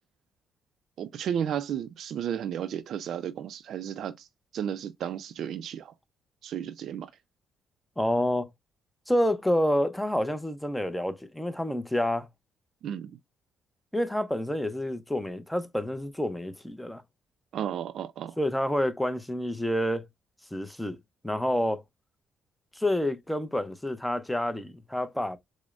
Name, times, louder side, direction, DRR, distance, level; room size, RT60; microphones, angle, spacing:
voice 1, 1.0-4.3 4.5-5.9 6.4-7.1 12.8-13.2 17.5-18.4, right 9 dB, 70° right, 0.3 m, -33 dB
voice 2, 8.0-8.5 9.1-12.3 13.9-17.0 18.4-20.1 20.5-21.0 21.2-21.8 22.7-25.4, left 1 dB, 5° left, 0.6 m, -28 dB
6.1 x 2.0 x 2.4 m
cardioid pair, 90°, 0 cm